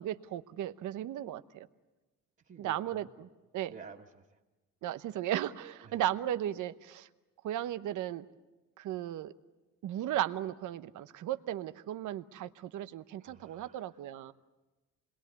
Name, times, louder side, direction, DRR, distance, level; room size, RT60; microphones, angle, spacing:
voice 1, 0.0-1.7 2.6-3.3 3.5-3.7 4.8-7.1 7.4-8.3 8.8-9.3 9.8-14.3, right 12 dB, 80° right, 12 dB, 1.0 m, -36 dB
voice 2, 2.4-3.1 3.7-4.4 5.8-6.0 13.2-14.3, right 5 dB, 45° right, -4 dB, 2.0 m, -52 dB
27.0 x 21.5 x 8.2 m, 1.1 s
cardioid pair, 90°, 30 cm